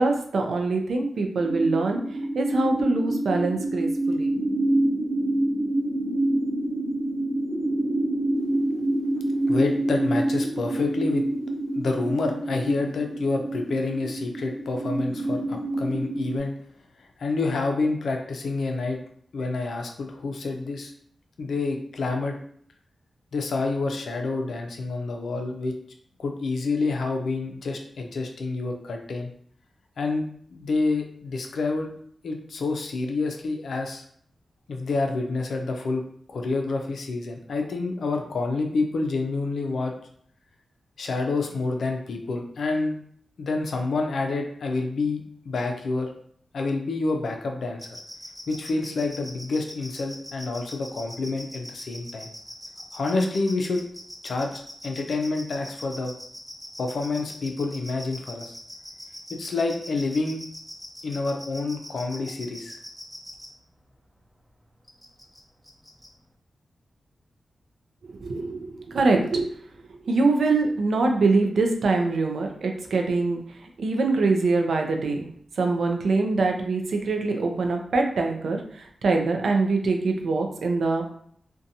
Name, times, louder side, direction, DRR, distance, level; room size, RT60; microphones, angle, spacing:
voice 1, 0.0-2.0 2.3-4.4 68.0-69.5 70.1-73.4 73.8-75.3 75.6-81.1, right 3 dB, 75° right, 3 dB, 0.4 m, -24 dB
sound 1, 1.4-16.4, right 1 dB, 50° right, 1.1 m, -27 dB
voice 2, 9.5-11.2 11.7-16.5 17.0-19.0 19.3-20.9 21.4-22.4 23.3-25.7 26.2-29.3 30.0-31.9 32.2-34.0 34.7-36.0 36.3-39.9 41.0-42.9 43.4-46.1 46.5-48.0 48.5-52.3 52.9-53.8 54.2-54.5 54.8-56.1 56.8-58.5 59.3-60.4 61.0-62.8, left 3 dB, 75° left, 3 dB, 0.4 m, -28 dB
sound 2, 47.8-63.5 64.9-65.4 65.6-66.1, equal, ahead, 0.5 m, -41 dB
2.6 x 2.2 x 2.7 m, 0.63 s
wide cardioid pair, 135°, 0 cm